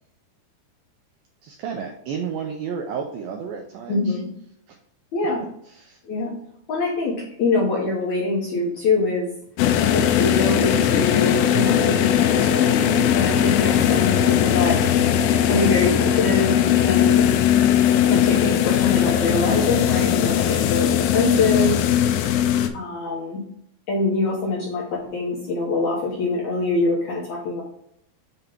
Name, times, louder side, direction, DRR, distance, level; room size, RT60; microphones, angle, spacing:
voice 1, 1.4-4.2 4.7-4.8 5.7-6.0, right 6 dB, 85° right, 3 dB, 2.0 m, -32 dB
voice 2, 3.9-4.3 5.1-5.4 6.1-6.3 6.7-9.3 9.9-12.8 13.1-14.8 15.4-17.3 18.0-21.8 22.7-23.4 23.9-27.6, left 3 dB, 70° left, -4 dB, 1.8 m, -24 dB
sound 1, 9.6-22.7, left 10 dB, 90° left, 2.8 m, -19 dB
7.2 x 2.9 x 5.1 m, 0.72 s
omnidirectional pair, 4.8 m